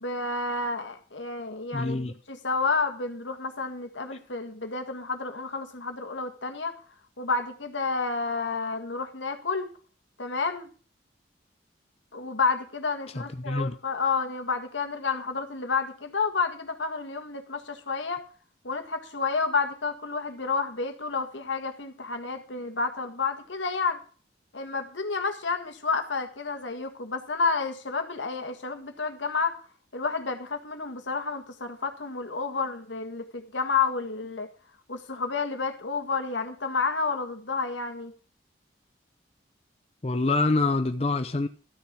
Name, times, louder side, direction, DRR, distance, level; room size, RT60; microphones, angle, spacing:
voice 1, 0.0-2.0 2.3-6.8 7.2-9.7 10.2-10.7 12.1-18.2 18.6-24.0 24.5-29.6 29.9-34.5 34.9-38.1, left 4 dB, 85° left, 1.8 m, -30 dB
voice 2, 1.7-2.1 13.1-13.7 40.0-41.5, left 3 dB, 35° left, 0.6 m, -26 dB
12.5 x 6.7 x 6.2 m
head